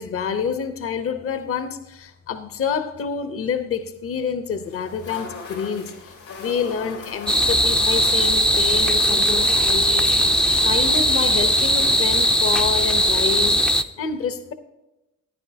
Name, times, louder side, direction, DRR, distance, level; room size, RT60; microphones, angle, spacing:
voice 1, 0.0-5.9 6.4-10.1 10.6-14.5, left 6 dB, 50° left, 0.9 m, -28 dB
sound 1, 4.6-12.0, left 3 dB, 90° left, 3.1 m, -39 dB
sound 2, 7.3-13.8, equal, 5° left, 0.4 m, -19 dB
14.5 x 10.0 x 2.8 m
cardioid pair, 90°, 30 cm